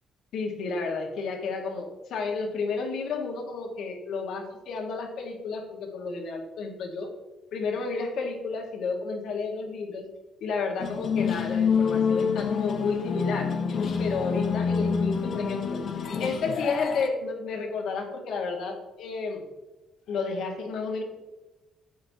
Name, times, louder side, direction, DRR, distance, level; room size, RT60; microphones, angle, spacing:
voice 1, 0.3-7.1 7.5-10.1 10.4-15.8 16.2-19.5 20.1-21.0, left 4 dB, 75° left, 2 dB, 1.5 m, -31 dB
sound 1, 10.8-17.1, left 6 dB, 60° left, 0.8 m, -27 dB
12.0 x 7.6 x 2.8 m, 1.1 s
cardioid pair, 90°, 0 cm